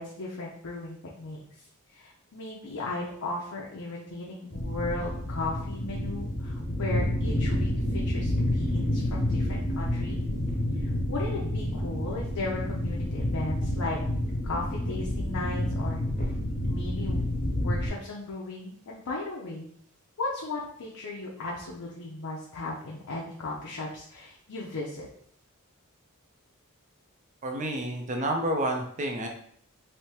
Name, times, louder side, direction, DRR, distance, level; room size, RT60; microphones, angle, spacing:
voice 1, 0.0-10.2 10.7-14.0 14.4-16.0 16.6-17.3 17.6-19.7 20.2-25.1, left 2 dB, 80° left, -4 dB, 0.6 m, -36 dB
sound 1, 4.5-17.9, left 1 dB, 35° left, 0.7 m, -29 dB
voice 2, 27.4-29.3, right 1 dB, 35° right, 3 dB, 0.5 m, -29 dB
3.4 x 2.7 x 2.8 m, 0.63 s
head